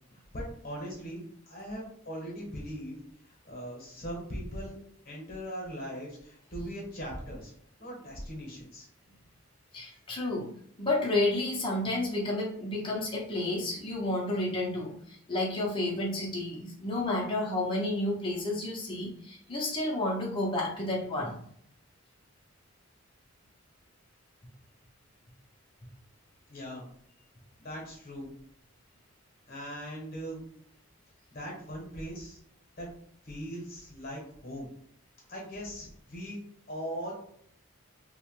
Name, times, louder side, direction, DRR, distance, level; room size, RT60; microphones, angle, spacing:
voice 1, 0.1-4.8 5.0-7.5 7.8-8.9 26.5-26.9 27.6-28.3 29.5-30.4 31.3-32.4 32.8-32.9 33.2-34.7 35.3-36.4 36.7-37.1, equal, 45° left, -2 dB, 0.9 m, -40 dB
voice 2, 9.7-10.5 10.8-21.4, left 2 dB, 25° left, -3 dB, 0.6 m, -31 dB
2.9 x 2.1 x 3.0 m, 0.66 s
head